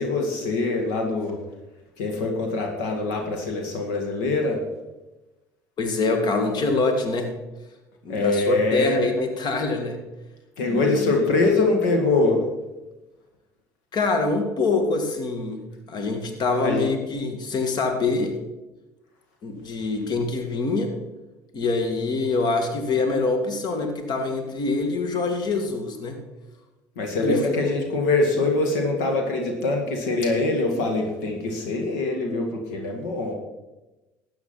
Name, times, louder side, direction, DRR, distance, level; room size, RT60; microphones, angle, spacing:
voice 1, 0.0-1.4 2.0-4.6 8.1-9.0 10.6-12.4 16.6-16.9 27.0-33.3, left 2 dB, 80° left, 3 dB, 1.9 m, -23 dB
voice 2, 5.8-7.3 8.0-10.0 10.7-11.2 13.9-15.6 15.9-18.3 19.4-20.9 21.5-26.2 27.2-27.7, left 3 dB, 50° left, 6 dB, 2.0 m, -25 dB
12.5 x 8.9 x 5.9 m, 1.1 s
hypercardioid pair, 65°, 9 cm